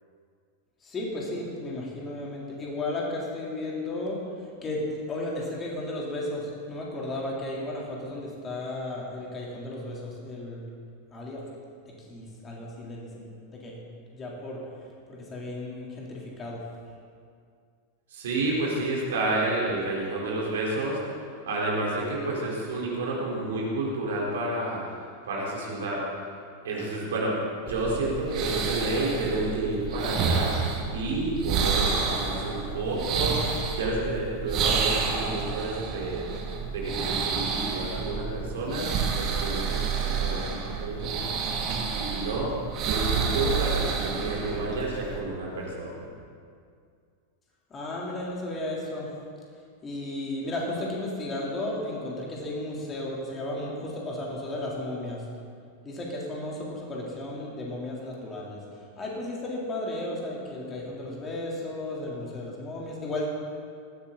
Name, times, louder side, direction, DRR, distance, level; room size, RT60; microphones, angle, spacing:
voice 1, 0.8-4.2 4.6-10.7 11.1-11.4 11.9-13.8 14.1-14.6 15.1-16.6 47.7-49.1 49.8-55.2 55.8-58.6 59.0-63.3, left 1 dB, 20° left, -3 dB, 3.7 m, -34 dB
voice 2, 18.1-21.0 21.4-24.8 25.2-26.0 26.6-27.4 27.6-30.5 30.9-33.4 33.7-36.3 36.7-38.9 39.1-41.4 41.9-42.5 42.9-45.9, right 2 dB, 60° right, -4 dB, 4.4 m, -30 dB
sound 1, 27.7-45.2, right 5 dB, 35° right, 2.1 m, -29 dB
19.0 x 16.0 x 4.2 m, 2.2 s
figure-of-eight pair, 90°, 0 cm